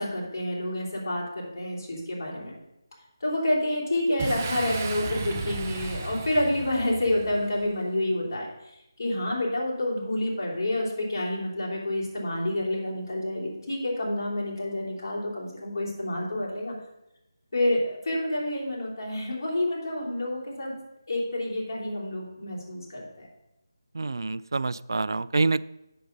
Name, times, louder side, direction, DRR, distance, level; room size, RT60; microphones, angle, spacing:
voice 1, 0.0-2.5 3.2-8.5 9.0-16.7 17.5-20.7 21.1-23.3, left 1 dB, 50° left, -4 dB, 3.3 m, -28 dB
Boom, 4.2-7.8, right 4 dB, 25° right, 0.7 m, -35 dB
voice 2, 24.0-25.6, right 3 dB, 70° right, 17 dB, 0.3 m, -26 dB
7.7 x 6.8 x 5.2 m, 0.89 s
figure-of-eight pair, 165°, 2 cm